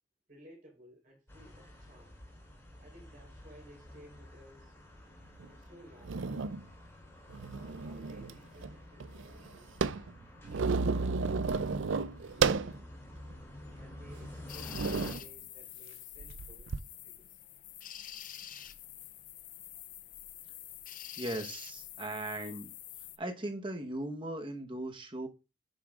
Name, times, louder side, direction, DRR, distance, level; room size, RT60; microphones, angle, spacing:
voice 1, 0.3-2.1 2.8-4.7 5.4-6.2 7.5-9.8 10.4-12.9 13.7-17.4, equal, 45° right, 4.2 m, -57 dB
sound 1, 1.3-15.1, left 1 dB, 10° left, 3.4 m, -50 dB
sound 2, 5.4-5.5 6.0-6.6 7.3-8.4 8.6-8.7 9.0-12.8 13.3-13.4 14.1-14.3 14.7-15.2 16.2-16.8, right 4 dB, 75° right, 0.5 m, -32 dB
sound 3, 14.5-23.2, left 12 dB, 45° left, 0.5 m, -47 dB
voice 2, 21.2-22.7 23.2-25.3, right 1 dB, 25° right, 1.1 m, -38 dB
9.5 x 7.1 x 2.5 m
head